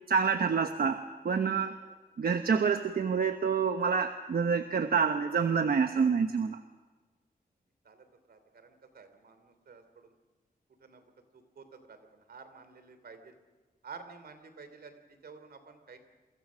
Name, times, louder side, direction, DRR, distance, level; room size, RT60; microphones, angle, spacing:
voice 1, 0.1-1.7 2.2-6.6, right 6 dB, 75° right, 7 dB, 1.1 m, -27 dB
voice 2, 1.7-2.0 7.8-10.1 10.8-11.0 11.3-13.4 13.8-16.0, right 5 dB, 90° right, 9 dB, 3.2 m, -51 dB
28.5 x 24.0 x 6.3 m, 1.3 s
wide cardioid pair, 160°, 16 cm